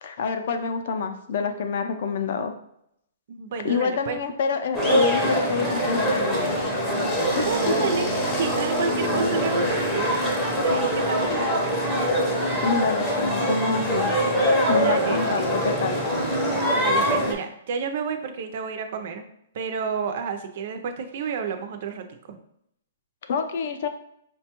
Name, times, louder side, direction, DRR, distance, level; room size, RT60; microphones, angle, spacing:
voice 1, 0.0-2.5 3.6-6.6 7.3-7.9 12.6-14.1 14.7-16.0 23.3-23.9, left 5 dB, 50° left, 6 dB, 0.4 m, -27 dB
voice 2, 3.3-4.2 7.4-10.2 10.5-11.7 14.7-15.4 16.7-19.2 19.5-22.4, right 6 dB, 45° right, 7 dB, 0.4 m, -30 dB
sound 1, 4.7-17.3, equal, 5° left, 0.6 m, -23 dB
5.0 x 2.2 x 2.9 m, 0.74 s
hypercardioid pair, 170°, 0 cm